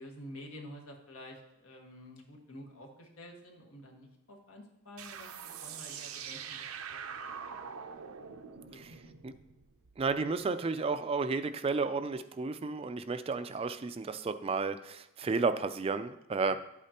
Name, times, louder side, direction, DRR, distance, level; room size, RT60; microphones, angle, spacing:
voice 1, 0.0-7.9 8.2-8.3 8.7-9.1 16.5-16.6, left 1 dB, 85° left, 1 dB, 1.6 m, -50 dB
sound 1, 5.0-10.3, right 7 dB, 90° right, 0.6 m, -44 dB
voice 2, 10.0-16.6, right 4 dB, 25° right, 11 dB, 0.3 m, -32 dB
11.5 x 8.3 x 2.9 m, 0.87 s
head